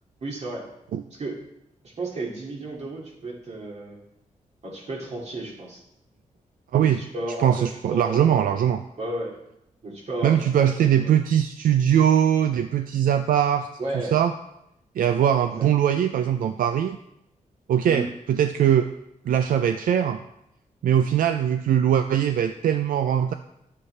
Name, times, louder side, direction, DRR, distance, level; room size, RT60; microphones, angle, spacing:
voice 1, 0.2-0.7 1.1-1.4 1.8-4.0 4.6-5.8 6.8-8.6 9.0-9.3 9.8-11.2 13.8-14.1 15.6-15.7 17.9-18.1, right 2 dB, 50° right, -2 dB, 2.3 m, -33 dB
voice 2, 7.4-8.8 10.2-13.7 14.1-14.3 15.0-17.0 17.7-18.9 19.3-20.2 20.8-23.3, right 9 dB, 85° right, 8 dB, 0.4 m, -21 dB
10.5 x 8.2 x 3.3 m, 0.83 s
wide cardioid pair, 120°, 14 cm